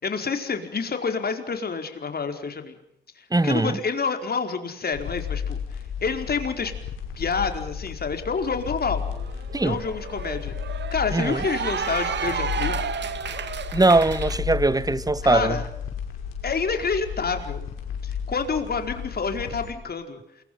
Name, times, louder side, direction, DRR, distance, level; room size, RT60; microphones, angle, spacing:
voice 1, 0.0-2.8 3.1-6.7 7.2-9.0 9.6-10.5 10.9-12.8 15.2-15.7 16.4-17.6 18.0-20.2, left 5 dB, 50° left, 4.8 m, -28 dB
voice 2, 3.3-3.8 9.5-9.8 11.1-11.4 13.7-15.6, right 2 dB, 20° right, 1.4 m, -21 dB
sound 1, 4.9-19.7, left 7 dB, 85° left, 5.5 m, -34 dB
Cheering / Applause, 8.5-8.6 8.9-14.4, right 7 dB, 60° right, 2.3 m, -32 dB
28.5 x 24.0 x 5.7 m
supercardioid pair, 50°, 21 cm